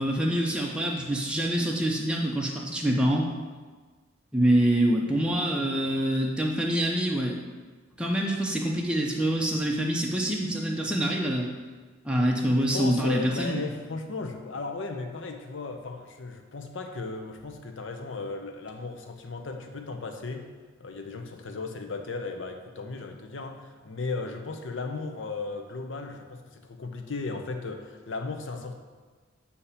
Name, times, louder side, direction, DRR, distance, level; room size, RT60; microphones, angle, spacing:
voice 1, 0.0-3.3 4.3-7.4 8.0-11.5 12.0-13.6, right 1 dB, 5° right, -2 dB, 0.6 m, -25 dB
voice 2, 12.7-20.5 20.8-28.7, left 3 dB, 65° left, 5 dB, 0.6 m, -36 dB
8.2 x 2.8 x 5.6 m, 1.4 s
head